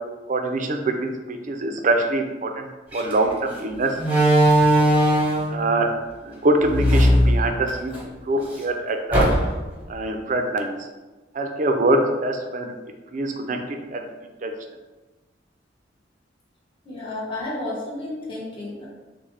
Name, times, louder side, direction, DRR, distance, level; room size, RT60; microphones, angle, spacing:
voice 1, 0.3-2.7 2.9-4.0 5.5-5.9 6.2-8.0 8.3-9.3 9.9-10.8 11.3-12.7 13.1-13.6 13.9-14.1 14.4-14.5, right 2 dB, 45° right, 4 dB, 0.5 m, -24 dB
Slam, 2.9-3.1 4.0-5.6 6.6-8.0 8.4-8.5 9.1-9.7, equal, 10° right, 0.9 m, -18 dB
voice 2, 16.8-18.9, left 2 dB, 30° left, -6 dB, 1.2 m, -32 dB
6.2 x 2.2 x 3.3 m, 1.2 s
head